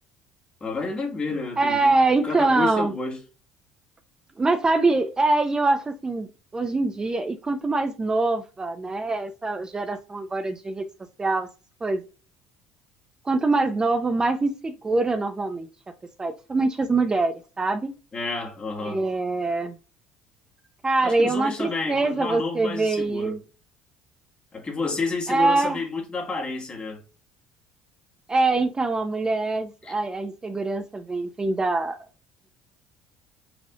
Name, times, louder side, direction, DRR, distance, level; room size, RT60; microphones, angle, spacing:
voice 1, 0.6-2.0 2.2-3.2 18.1-19.0 21.0-23.4 24.5-27.0 29.8-30.0, left 3 dB, 35° left, 1.7 m, -30 dB
voice 2, 1.6-2.9 4.4-6.3 6.5-10.8 11.2-11.5 11.8-12.0 13.2-15.7 16.2-17.9 18.8-19.7 20.8-23.4 25.3-25.8 28.3-32.0, right 3 dB, 25° right, 0.6 m, -24 dB
4.9 x 3.3 x 2.4 m
hypercardioid pair, 65°, 3 cm